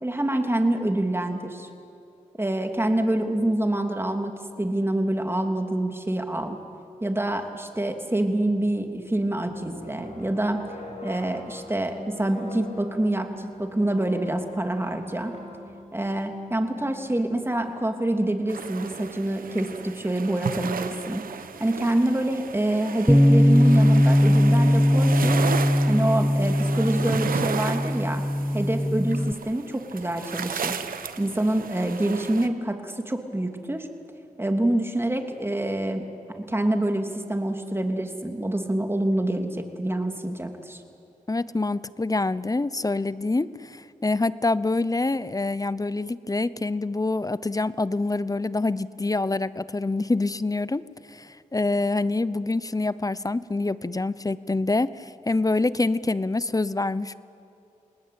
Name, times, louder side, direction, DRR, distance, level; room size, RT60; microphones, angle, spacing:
voice 1, 0.0-1.7 2.4-6.6 7.0-10.6 11.0-15.4 15.9-21.2 21.6-25.4 25.9-28.2 28.5-30.8 31.2-33.9 34.4-36.0 36.3-40.8, right 1 dB, 15° right, 4 dB, 3.1 m, -26 dB
sound 1, 9.0-17.7, equal, 50° left, 5.9 m, -42 dB
sound 2, 18.5-32.5, right 6 dB, 85° right, 1.1 m, -34 dB
Bass guitar, 23.1-29.3, equal, ahead, 0.5 m, -20 dB
voice 2, 41.3-50.8 51.1-57.1, left 2 dB, 25° left, 17 dB, 0.9 m, -26 dB
29.0 x 19.5 x 8.6 m, 2.7 s
cardioid pair, 50°, 14 cm